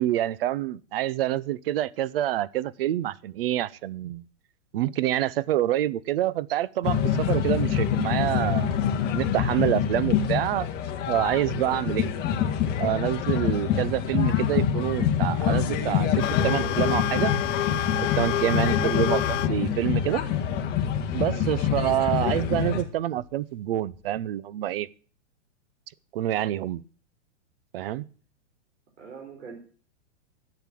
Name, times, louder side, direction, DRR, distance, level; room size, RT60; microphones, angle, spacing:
voice 1, 0.0-4.2 4.7-8.8 9.1-10.7 11.1-12.1 12.8-17.3 17.7-17.8 18.1-20.2 21.1-24.9 26.1-26.8 27.7-28.0, right 13 dB, 50° right, 0.7 m, -27 dB
sound 1, 6.8-22.8, left 8 dB, 25° left, 1.9 m, -26 dB
sound 2, 16.2-19.5 19.8-19.9 20.7-20.9 23.2-23.3 23.9-24.0, left 12 dB, 80° left, 0.6 m, -29 dB
voice 2, 29.0-29.6, right 4 dB, 80° right, 4.4 m, -43 dB
12.5 x 8.0 x 7.5 m
hypercardioid pair, 150°, 36 cm